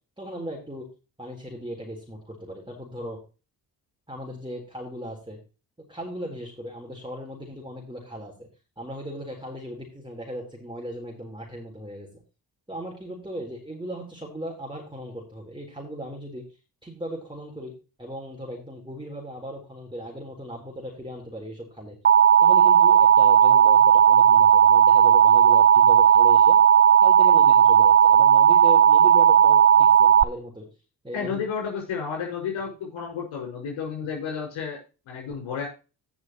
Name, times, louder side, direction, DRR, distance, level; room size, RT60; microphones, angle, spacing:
voice 1, 0.2-0.9 1.2-3.2 4.1-5.4 5.8-8.5 8.8-12.1 12.7-16.4 16.8-17.7 18.0-21.9 22.4-26.6 27.0-30.7 31.0-31.4, equal, 10° right, -2 dB, 4.0 m, -37 dB
Alarm, 22.0-30.2, right 8 dB, 25° right, 0.5 m, -15 dB
voice 2, 31.1-34.8 35.1-35.7, left 6 dB, 70° left, 1 dB, 6.0 m, -31 dB
16.5 x 6.2 x 3.1 m, 0.32 s
hypercardioid pair, 45°, 47 cm